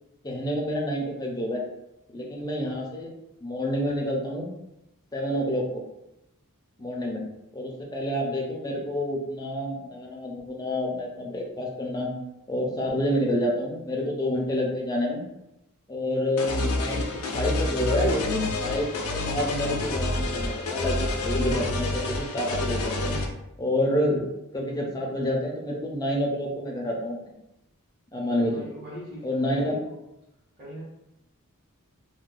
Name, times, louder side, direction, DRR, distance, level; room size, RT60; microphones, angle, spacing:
voice 1, 0.2-1.6 2.1-3.1 3.4-4.5 5.1-5.8 6.8-7.2 7.5-12.1 12.5-15.2 15.9-23.2 23.6-24.2 24.5-27.3 28.1-28.7 29.2-29.8, left 1 dB, 15° left, -1 dB, 0.5 m, -28 dB
sound 1, 16.4-23.3, left 2 dB, 70° left, 0.5 m, -28 dB
voice 2, 28.4-30.0 30.6-30.8, left 1 dB, 40° right, -11 dB, 1.3 m, -41 dB
2.5 x 2.2 x 3.7 m, 0.89 s
head